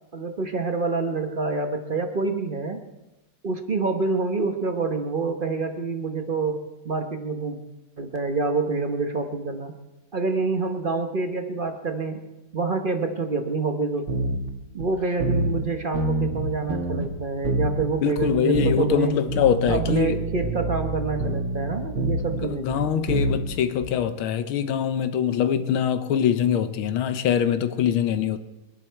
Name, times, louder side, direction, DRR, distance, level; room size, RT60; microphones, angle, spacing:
voice 1, 0.1-2.8 3.4-6.6 6.8-7.6 8.0-9.7 10.1-12.2 12.5-14.3 14.7-19.1 19.7-22.8, right 4 dB, 40° right, 0.7 m, -27 dB
sound 1, 14.1-14.5 14.8-14.9 15.2-15.6 15.9-17.1 17.4-19.0 19.3-23.9, right 2 dB, 70° right, 2.3 m, -27 dB
voice 2, 18.0-20.2 22.3-28.4, left 8 dB, 75° left, 1.7 m, -23 dB
23.5 x 11.0 x 4.6 m
omnidirectional pair, 2.4 m